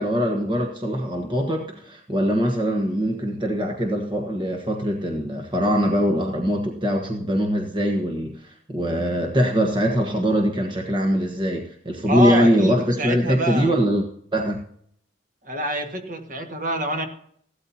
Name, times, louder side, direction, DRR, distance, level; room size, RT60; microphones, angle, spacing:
voice 1, 0.0-14.0 14.3-14.6, equal, 25° right, 1 dB, 1.3 m, -22 dB
voice 2, 12.1-13.8 15.4-17.1, right 1 dB, 45° right, 3 dB, 1.8 m, -26 dB
16.0 x 12.5 x 2.8 m, 0.64 s
head